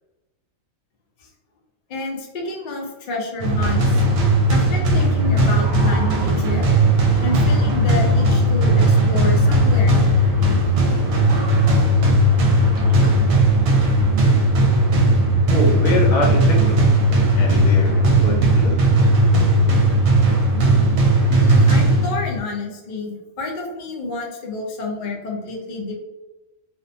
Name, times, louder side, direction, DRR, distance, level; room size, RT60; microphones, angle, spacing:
voice 1, 1.9-4.0 4.5-6.6 7.2-10.2 21.3-25.9, left 3 dB, 55° left, -1 dB, 0.6 m, -29 dB
sound 1, 3.4-13.8, right 1 dB, 15° right, 0.3 m, -34 dB
sound 2, 3.4-22.4, right 1 dB, 65° right, 0.9 m, -16 dB
voice 2, 15.5-16.9 17.4-18.8, left 1 dB, 80° left, 0 dB, 1.1 m, -24 dB
2.5 x 2.1 x 2.5 m, 1.1 s
omnidirectional pair, 1.4 m